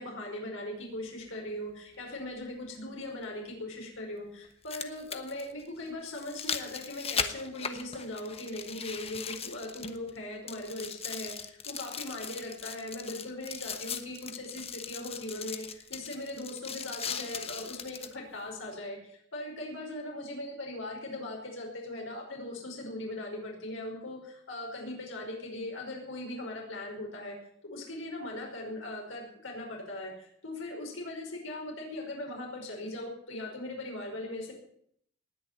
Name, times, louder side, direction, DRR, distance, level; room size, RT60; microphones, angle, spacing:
voice 1, 0.0-27.4 27.6-34.5, left 1 dB, 90° left, 0 dB, 5.2 m, -39 dB
sound 1, 1.2-1.3 3.2-3.3 4.4-10.2 10.5-18.2 18.7-18.8, left 6 dB, 30° left, 1.2 m, -39 dB
19.5 x 7.1 x 9.4 m, 0.68 s
head